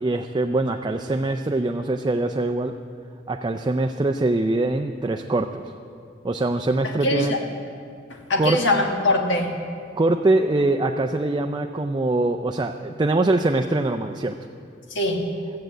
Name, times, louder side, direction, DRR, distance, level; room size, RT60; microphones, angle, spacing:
voice 1, 0.0-2.7 3.3-5.6 6.2-7.3 8.4-8.6 10.0-14.3, right 2 dB, 25° right, 5 dB, 0.4 m, -23 dB
voice 2, 6.8-7.4 8.1-9.5 14.9-15.2, left 2 dB, 75° left, 2 dB, 1.6 m, -22 dB
14.5 x 7.7 x 8.0 m, 2.3 s
head